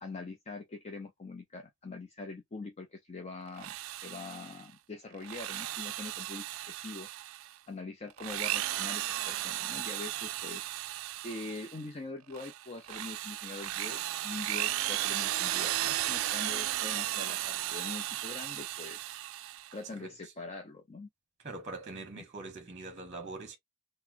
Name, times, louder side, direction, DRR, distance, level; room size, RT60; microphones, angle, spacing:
voice 1, 0.0-3.8 4.0-7.1 7.7-10.6 11.2-19.0 19.7-21.1, left 3 dB, 30° left, 0.5 m, -43 dB
Drill, 3.5-4.6 5.1-7.5 8.1-11.8 12.3-19.8, right 14 dB, 70° right, 0.3 m, -35 dB
voice 2, 21.4-23.6, right 3 dB, 35° right, 0.9 m, -43 dB
4.0 x 2.0 x 2.7 m
head